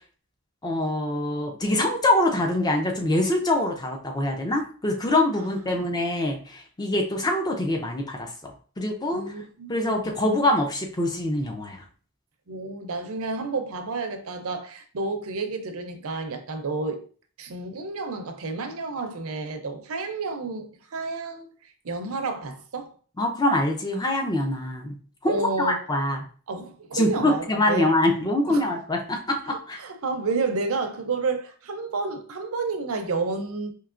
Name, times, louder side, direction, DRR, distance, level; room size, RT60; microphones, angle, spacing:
voice 1, 0.6-8.5 8.8-9.2 9.7-11.8 23.2-25.0 25.2-26.2 26.9-29.8, left 1 dB, 20° left, 0.5 m, -24 dB
voice 2, 5.4-6.0 9.1-10.1 12.5-17.0 17.4-21.5 21.8-22.9 25.2-25.8 26.5-27.9 28.5-28.6 29.5-33.7, right 3 dB, 70° right, 0.6 m, -30 dB
4.5 x 2.8 x 2.5 m
head